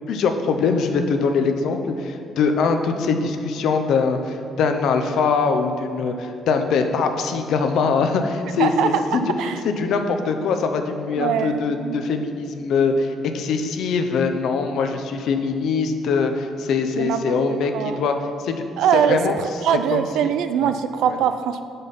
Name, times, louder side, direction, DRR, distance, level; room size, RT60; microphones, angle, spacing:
voice 1, 0.1-9.2 9.6-18.6 18.9-19.4 19.9-20.3 20.6-20.7 21.0-21.2, left 5 dB, 65° left, 6 dB, 0.4 m, -22 dB
voice 2, 8.6-9.0 9.4-9.6 11.2-12.0 17.0-17.2 17.7-18.0 18.8-21.6, right 8 dB, 90° right, 10 dB, 0.3 m, -22 dB
5.6 x 5.1 x 4.0 m, 2.5 s
cardioid pair, 170°, 0 cm